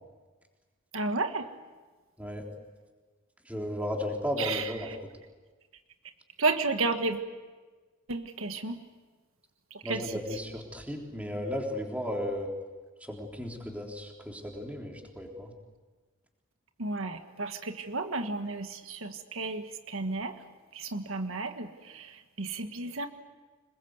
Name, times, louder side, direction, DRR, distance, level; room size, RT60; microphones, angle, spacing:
voice 1, 0.9-1.5 4.4-5.0 6.4-7.2 8.1-8.8 9.7-10.4 16.8-20.4 20.7-23.1, right 3 dB, 80° right, 6 dB, 1.5 m, -32 dB
voice 2, 3.5-4.9 9.8-12.5 13.1-15.5, left 1 dB, 5° right, 0 dB, 3.5 m, -35 dB
26.5 x 21.0 x 8.1 m, 1.3 s
head